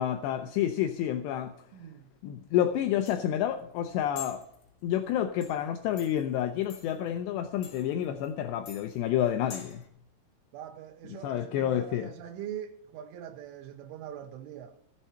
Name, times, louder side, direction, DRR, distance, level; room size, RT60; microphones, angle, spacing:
voice 1, 0.0-1.5 2.2-4.4 4.8-9.8 11.2-12.1, left 10 dB, 80° left, 2.6 m, -29 dB
voice 2, 1.7-2.1 10.5-14.8, right 10 dB, 90° right, 3.2 m, -42 dB
sound 1, 2.5-9.9, left 7 dB, 45° left, 2.6 m, -49 dB
15.0 x 7.8 x 5.6 m
omnidirectional pair, 5.5 m